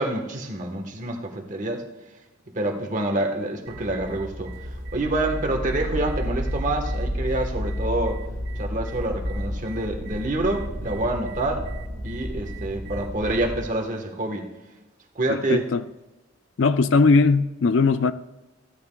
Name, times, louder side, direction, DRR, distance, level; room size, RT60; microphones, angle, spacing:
voice 1, 0.0-1.8 2.5-8.2 8.6-11.6 12.0-14.5 15.1-15.6, right 1 dB, 35° right, 1.3 m, -27 dB
sound 1, 3.7-13.7, right 1 dB, 65° right, 1.6 m, -34 dB
sound 2, 5.5-13.5, left 1 dB, 15° left, 3.2 m, -33 dB
voice 2, 15.3-15.8 16.6-18.1, left 4 dB, 65° left, 0.4 m, -19 dB
15.5 x 12.0 x 2.3 m
head